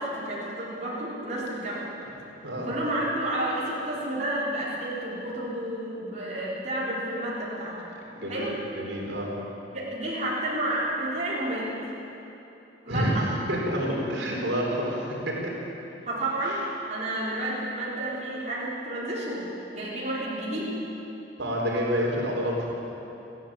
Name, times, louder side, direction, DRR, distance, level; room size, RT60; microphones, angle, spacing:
voice 1, 0.0-1.9 2.6-7.8 8.3-8.6 9.7-11.7 12.8-13.3 16.1-20.8, right 1 dB, 40° right, -6 dB, 4.2 m, -30 dB
voice 2, 8.1-9.3 12.9-15.5 21.4-22.5, equal, 75° right, -2 dB, 4.3 m, -28 dB
29.0 x 11.0 x 9.0 m, 3.0 s
head